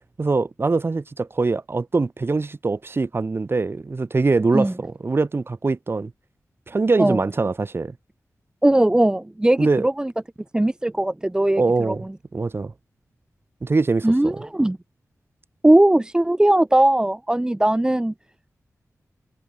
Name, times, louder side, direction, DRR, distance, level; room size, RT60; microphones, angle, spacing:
voice 1, 0.2-6.1 6.7-7.9 9.6-9.9 11.6-12.0 12.3-12.7 13.6-14.3, right 3 dB, 40° right, 5.5 m, -23 dB
voice 2, 8.6-10.1 10.5-12.0 14.0-14.8 15.6-18.1, right 1 dB, 15° right, 0.8 m, -19 dB
wide cardioid pair, 115°, 6 cm